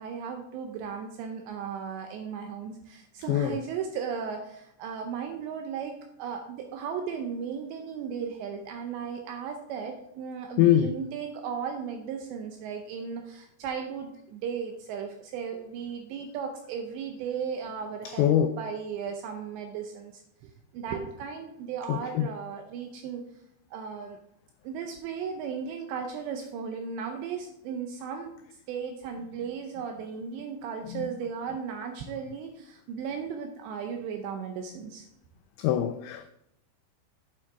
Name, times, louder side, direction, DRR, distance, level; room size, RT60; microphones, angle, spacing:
voice 1, 0.0-23.2 23.7-24.2 24.6-28.3 28.7-35.1, right 6 dB, 80° right, 2.6 m, -36 dB
voice 2, 3.3-3.6 10.6-11.0 18.1-18.5 21.9-22.3 30.9-31.0 35.6-36.3, left 11 dB, 90° left, 2.5 m, -24 dB
8.8 x 7.3 x 3.5 m
omnidirectional pair, 5.7 m